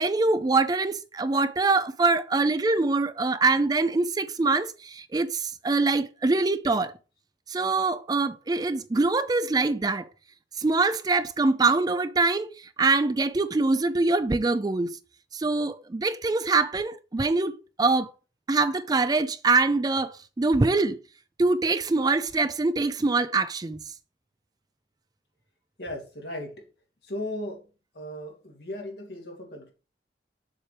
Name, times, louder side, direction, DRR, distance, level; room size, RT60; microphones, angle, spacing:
voice 1, 0.0-6.9 7.5-10.1 10.6-15.0 15.3-18.1 18.5-21.0 21.4-23.8, right 3 dB, 20° right, 0.4 m, -24 dB
voice 2, 25.8-26.7 27.0-27.7 27.9-29.7, left 1 dB, 65° left, 2.7 m, -36 dB
7.2 x 6.2 x 3.3 m
head